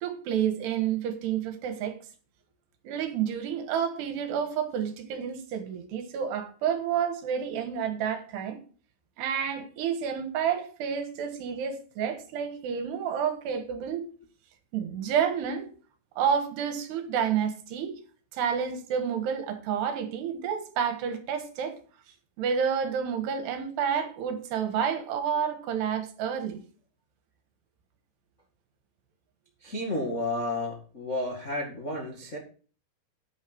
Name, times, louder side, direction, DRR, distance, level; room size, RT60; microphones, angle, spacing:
voice 1, 0.0-2.0 2.8-8.6 9.2-14.1 14.7-15.7 16.2-17.9 18.3-21.8 22.4-26.6, right 8 dB, 70° right, 3.3 m, -29 dB
voice 2, 29.6-32.4, left 1 dB, 90° left, 0.6 m, -32 dB
9.9 x 9.4 x 4.6 m
omnidirectional pair, 5.2 m